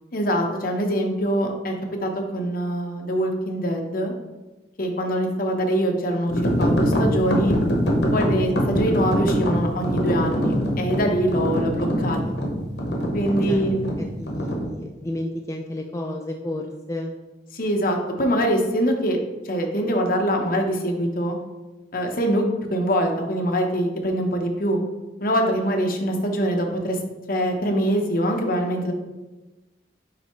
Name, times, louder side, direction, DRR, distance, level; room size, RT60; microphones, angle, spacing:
voice 1, 0.1-1.7 2.0-4.1 4.8-6.3 6.6-7.5 8.1-12.4 13.1-13.9 17.5-19.2 19.4-21.4 21.9-22.4 22.7-24.8 25.2-27.0 27.3-28.9, equal, 55° left, 2 dB, 0.9 m, -23 dB
sound 1, 6.3-14.7, equal, 80° left, 1.1 m, -23 dB
voice 2, 14.0-17.1, left 1 dB, 20° left, 1 dB, 0.4 m, -32 dB
9.1 x 3.3 x 3.1 m, 1.1 s
head